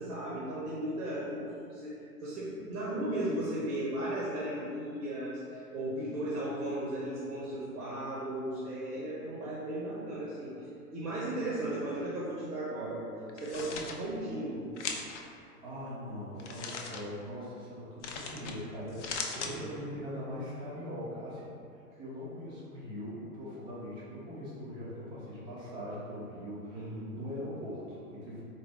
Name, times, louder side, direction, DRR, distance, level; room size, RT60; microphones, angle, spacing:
voice 1, 0.0-10.5 10.9-13.1 13.3-14.6 19.4-19.6 26.7-27.2, right 1 dB, 70° right, -6 dB, 0.8 m, -36 dB
sound 1, 13.3-13.9 14.8-15.2 16.4-17.0 18.0-18.5 18.9-19.5, left 5 dB, 50° left, 0.4 m, -38 dB
voice 2, 15.5-21.5 22.0-28.4, equal, 10° right, -9 dB, 0.4 m, -41 dB
4.0 x 2.1 x 3.4 m, 2.5 s
figure-of-eight pair, 105°, 47 cm